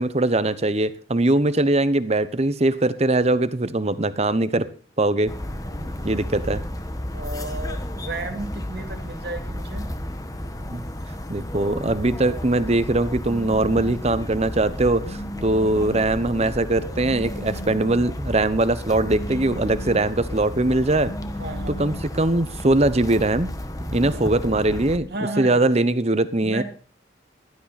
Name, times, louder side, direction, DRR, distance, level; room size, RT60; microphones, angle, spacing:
voice 1, 0.0-4.7 5.0-5.3 6.0-6.6 10.7-10.8 11.3-21.1 21.7-23.5 23.9-25.1 25.4-26.6, right 2 dB, 35° right, 14 dB, 1.0 m, -21 dB
sound 1, 5.3-25.0, left 1 dB, 20° left, 1.4 m, -33 dB
voice 2, 5.7-6.3 7.1-9.9 15.3-15.7 21.4-22.0 24.0-24.4 25.1-25.7 26.4-26.6, right 2 dB, 60° right, 6 dB, 2.6 m, -34 dB
Telephone, 15.0-16.1 17.0-18.1 19.0-20.1 21.0-22.1, left 1 dB, 60° left, 2.7 m, -37 dB
16.0 x 13.0 x 4.2 m, 0.41 s
head